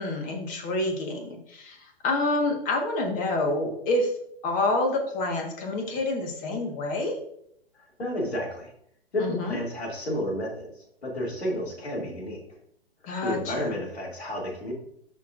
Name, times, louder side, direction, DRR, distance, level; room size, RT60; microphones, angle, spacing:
voice 1, 0.0-4.1 4.4-7.1 9.2-9.6 13.0-13.7, left 2 dB, 25° left, 3 dB, 1.5 m, -28 dB
voice 2, 7.8-8.7 9.1-12.4 13.2-14.7, left 1 dB, 80° left, -3 dB, 2.7 m, -31 dB
12.5 x 4.6 x 2.6 m, 0.70 s
figure-of-eight pair, 120°, 31 cm